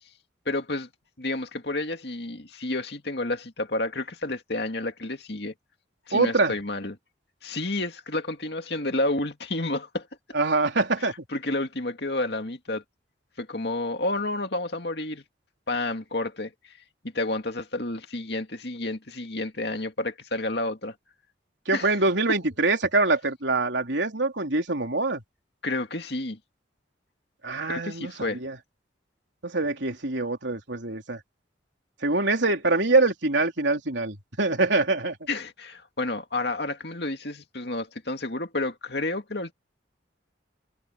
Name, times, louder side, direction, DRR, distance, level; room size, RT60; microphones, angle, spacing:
voice 1, 0.5-0.9 1.2-5.5 6.1-7.0 7.4-10.1 11.3-12.8 13.4-15.2 15.7-16.5 17.0-20.9 21.7-22.0 25.6-26.4 27.7-28.4 35.3-39.5, left 2 dB, 60° left, 2.4 m, -30 dB
voice 2, 6.1-6.5 10.3-11.3 21.7-25.2 27.4-28.6 29.4-31.2 32.0-35.2, right 3 dB, 75° right, 3.5 m, -24 dB
head